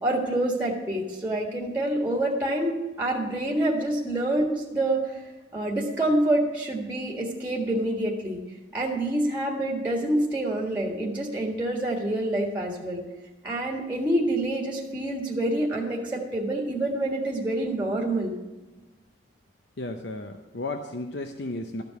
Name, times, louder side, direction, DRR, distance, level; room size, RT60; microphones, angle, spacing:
voice 1, 0.0-5.2 5.5-8.4 8.7-13.0 13.4-18.3, right 1 dB, 10° right, -1 dB, 1.7 m, -27 dB
voice 2, 19.8-21.8, left 2 dB, 65° left, 5 dB, 0.8 m, -34 dB
13.5 x 5.2 x 9.2 m, 1.2 s
head